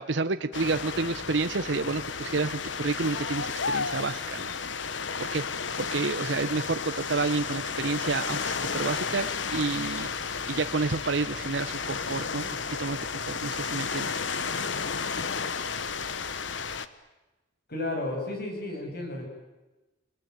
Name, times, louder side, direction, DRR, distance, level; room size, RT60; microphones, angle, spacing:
voice 1, 0.0-4.5 5.2-5.4 5.8-10.1 10.5-13.0 13.3-14.3, right 3 dB, 65° right, 10 dB, 0.9 m, -30 dB
sound 1, 0.5-16.9, left 5 dB, 75° left, 1.3 m, -32 dB
voice 2, 17.7-19.3, left 2 dB, 55° left, 3 dB, 7.0 m, -32 dB
30.0 x 20.0 x 9.3 m, 1.1 s
head